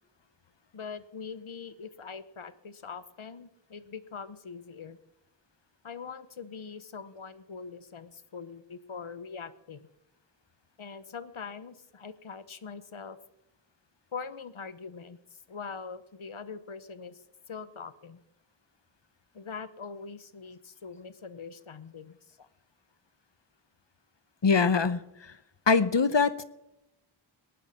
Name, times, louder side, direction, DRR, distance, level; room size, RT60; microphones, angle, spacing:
voice 1, 0.7-5.0 5.8-9.9 10.8-13.2 14.1-17.2 17.5-18.2 19.3-22.4, left 5 dB, 85° left, 14 dB, 1.0 m, -42 dB
voice 2, 24.4-25.3 25.7-26.4, left 5 dB, 65° left, 15 dB, 1.0 m, -23 dB
18.5 x 11.5 x 5.8 m, 0.86 s
wide cardioid pair, 40°, 47 cm